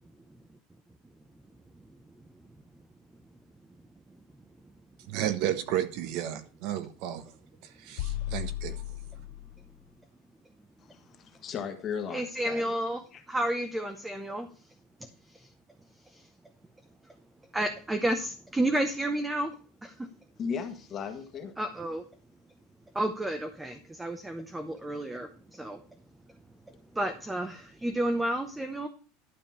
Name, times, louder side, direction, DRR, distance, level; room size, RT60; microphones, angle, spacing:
voice 1, 5.1-7.3 7.6-9.0, right 11 dB, 45° right, 1.1 m, -33 dB
sound 1, 8.0-9.8, left 14 dB, 60° left, 0.9 m, -36 dB
voice 2, 10.8-12.7 13.1-13.2 20.4-21.5, left 6 dB, 25° left, 1.5 m, -36 dB
voice 3, 12.1-13.0 13.3-14.5 15.3-15.5 16.1-16.3 17.5-19.5 19.8-20.1 21.6-22.0 22.9-25.8 26.9-28.9, right 1 dB, 5° right, 0.8 m, -31 dB
12.0 x 5.2 x 7.3 m
supercardioid pair, 175°, 0 cm